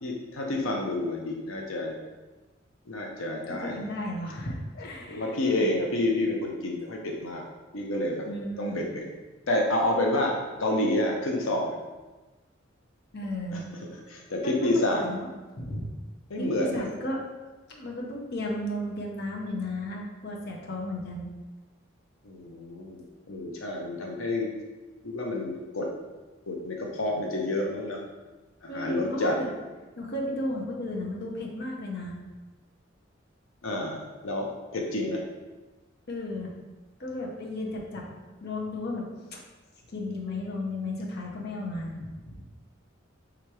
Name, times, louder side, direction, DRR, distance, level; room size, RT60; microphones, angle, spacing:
voice 1, 0.0-2.0 2.9-3.8 5.1-7.5 7.7-8.3 8.6-9.1 9.5-11.7 13.5-13.6 14.1-15.0 16.3-16.9 22.2-24.5 25.0-25.9 26.5-28.0 28.6-29.4 33.6-35.2, left 1 dB, 90° left, 0 dB, 0.6 m, -29 dB
voice 2, 3.5-5.4 8.3-8.8 13.1-13.6 14.4-15.3 15.6-15.9 16.4-17.2 17.7-21.3 28.7-29.5 30.0-32.2 36.1-36.5 37.0-38.1 38.4-39.4 39.9-42.5, left 1 dB, 55° left, -1 dB, 0.7 m, -34 dB
3.5 x 3.0 x 4.7 m, 1.2 s
head